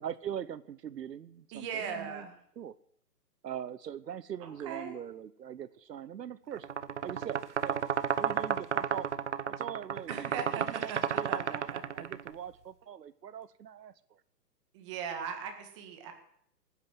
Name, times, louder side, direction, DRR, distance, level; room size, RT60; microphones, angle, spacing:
voice 1, 0.0-2.3 2.6-2.8 3.4-6.7 7.0-7.8 8.2-9.1 9.4-10.3 10.6-14.2, right 9 dB, 80° right, 16 dB, 1.0 m, -42 dB
voice 2, 1.5-2.4 4.4-5.0 10.1-11.8 14.7-16.1, right 7 dB, 20° right, 5 dB, 1.8 m, -39 dB
sound 1, 6.6-12.3, right 8 dB, 45° right, 0.5 m, -32 dB
19.0 x 9.6 x 7.7 m, 0.67 s
hypercardioid pair, 170°, 49 cm